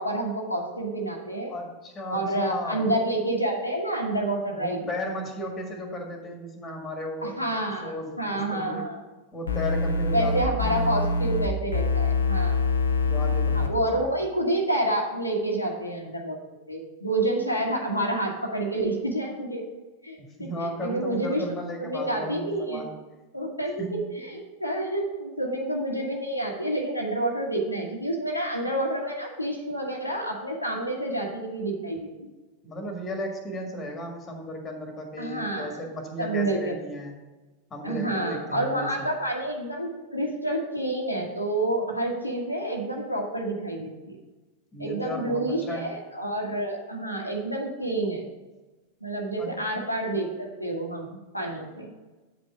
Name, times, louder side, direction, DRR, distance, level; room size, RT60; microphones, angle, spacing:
voice 1, 0.0-1.5 2.1-4.9 7.2-9.0 10.1-12.6 13.5-16.4 16.7-19.6 20.0-21.4 21.8-22.8 23.3-32.3 35.2-35.8 36.2-36.7 37.8-44.2 44.8-48.2 49.0-51.9, right 1 dB, 90° left, -1 dB, 1.4 m, -28 dB
voice 2, 1.5-2.9 4.5-7.5 7.8-8.9 9.3-10.7 13.0-14.1 20.2-22.9 23.8-23.9 32.6-37.2 37.7-39.1 44.7-45.9 49.4-49.5, left 1 dB, 20° left, 3 dB, 1.8 m, -35 dB
sound 1, 9.5-11.5 11.7-13.7, left 3 dB, 70° left, 0.7 m, -24 dB
8.6 x 5.2 x 5.0 m, 1.2 s
figure-of-eight pair, 90°, 0 cm